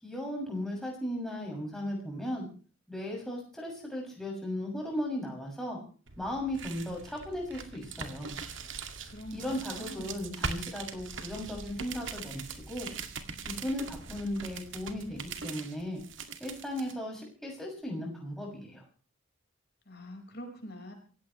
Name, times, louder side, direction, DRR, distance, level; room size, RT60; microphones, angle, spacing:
voice 1, 0.0-2.5 2.9-5.8 6.2-8.3 9.0-12.9 13.4-16.0 16.4-18.8, left 1 dB, ahead, -2 dB, 6.6 m, -36 dB
sound 1, 6.1-16.9, right 5 dB, 60° right, 2.2 m, -41 dB
voice 2, 9.1-10.3 19.8-20.9, equal, 50° left, 3 dB, 4.9 m, -45 dB
27.5 x 16.0 x 3.2 m, 0.40 s
head